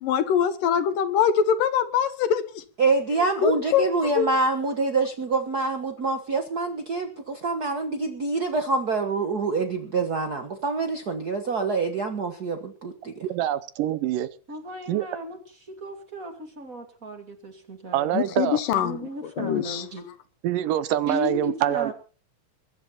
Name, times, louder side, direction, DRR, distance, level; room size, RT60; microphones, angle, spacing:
voice 1, 0.0-2.6 3.4-3.9 4.2-4.3 18.1-19.0 19.4-19.8, left 8 dB, 75° left, 2.7 m, -23 dB
voice 2, 2.8-13.2, right 3 dB, 60° right, 0.9 m, -26 dB
voice 3, 13.2-14.3 14.9-15.1 17.9-18.6 20.4-21.9, right 12 dB, 80° right, 2.4 m, -25 dB
voice 4, 14.5-15.4 15.6-18.4 18.7-20.1 21.1-21.9, equal, 25° right, 2.7 m, -35 dB
22.0 x 11.0 x 4.3 m
omnidirectional pair, 3.9 m